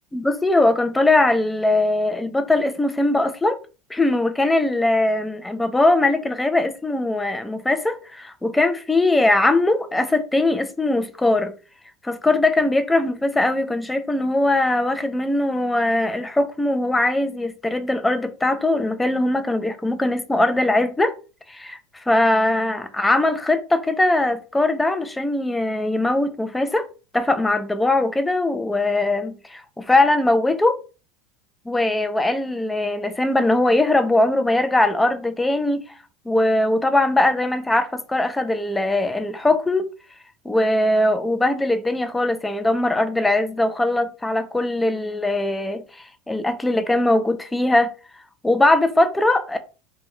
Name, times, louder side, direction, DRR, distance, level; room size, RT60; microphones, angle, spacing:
voice 1, 0.1-3.6 3.9-11.5 12.0-21.1 21.5-21.8 22.1-26.9 27.1-30.8 31.7-35.8 36.3-39.9 40.4-45.8 46.3-47.9 48.4-49.6, left 2 dB, 10° left, 0.4 m, -20 dB
3.0 x 2.2 x 3.1 m
supercardioid pair, 105°, 0 cm